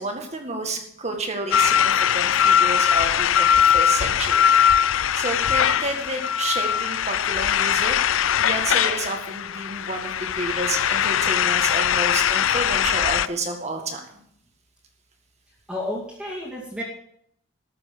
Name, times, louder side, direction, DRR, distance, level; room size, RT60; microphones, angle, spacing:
voice 1, 0.0-8.0 8.4-14.0, right 2 dB, 35° right, 3 dB, 1.8 m, -30 dB
sound 1, 1.5-13.3, left 9 dB, 80° left, 0.5 m, -21 dB
voice 2, 15.7-16.8, left 1 dB, 5° right, -6 dB, 2.4 m, -31 dB
14.0 x 6.9 x 6.9 m, 0.70 s
head